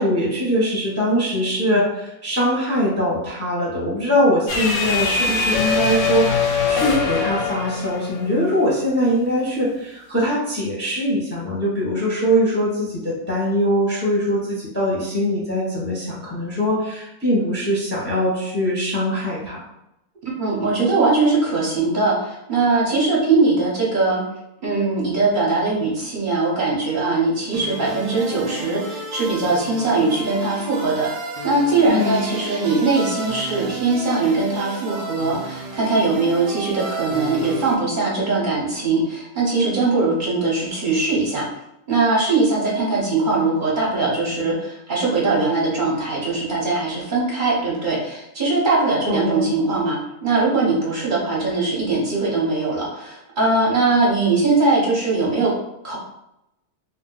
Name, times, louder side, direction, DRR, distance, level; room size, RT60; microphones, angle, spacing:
voice 1, 0.0-19.6 31.9-32.4 49.0-49.5, equal, 10° left, -6 dB, 0.7 m, -22 dB
sound 1, 4.5-8.8, left 5 dB, 60° left, 0.7 m, -22 dB
voice 2, 20.4-24.2 24.6-31.1 31.4-41.5 41.9-55.5 55.8-56.0, right 3 dB, 40° right, -4 dB, 0.8 m, -21 dB
sound 2, 27.5-37.7, right 3 dB, 80° right, 0.5 m, -32 dB
2.7 x 2.1 x 3.8 m, 0.86 s
omnidirectional pair, 1.6 m